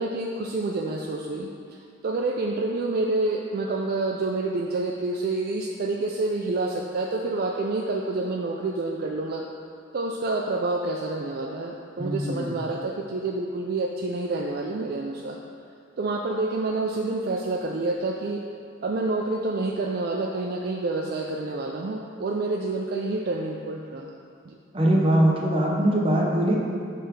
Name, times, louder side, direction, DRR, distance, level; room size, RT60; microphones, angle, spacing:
voice 1, 0.0-1.5 2.0-9.5 9.9-15.4 16.0-18.4 18.8-24.1 24.5-24.6, right 2 dB, 50° right, 0 dB, 0.3 m, -28 dB
voice 2, 12.0-12.5 24.7-26.6, right 1 dB, 30° right, -3 dB, 0.8 m, -21 dB
6.3 x 3.3 x 5.0 m, 2.3 s
head